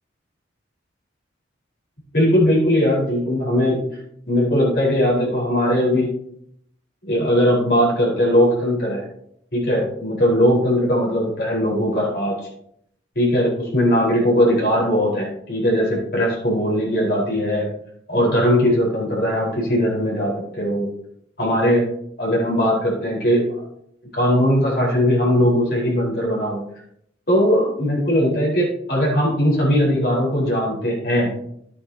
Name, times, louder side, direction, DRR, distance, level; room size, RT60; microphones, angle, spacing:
voice 1, 2.1-3.8 4.3-6.1 7.0-9.0 9.5-12.4 13.1-17.7 18.1-20.9 21.4-21.8 22.2-23.4 24.1-26.6 27.3-31.3, equal, 55° left, -5 dB, 4.5 m, -19 dB
11.5 x 9.0 x 2.9 m, 0.71 s
head